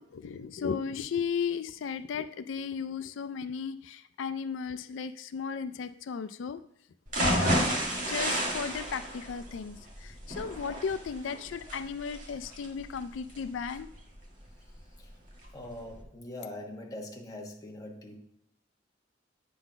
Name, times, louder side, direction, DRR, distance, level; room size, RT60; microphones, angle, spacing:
voice 1, 0.0-6.6 7.2-13.9, left 6 dB, 90° left, 12 dB, 0.4 m, -35 dB
sound 1, 7.1-15.0 15.4-15.5 15.9-16.0, right 1 dB, 45° right, 1.6 m, -32 dB
voice 2, 15.5-18.2, left 1 dB, 20° left, 0 dB, 1.2 m, -42 dB
8.6 x 3.9 x 5.7 m, 0.74 s
head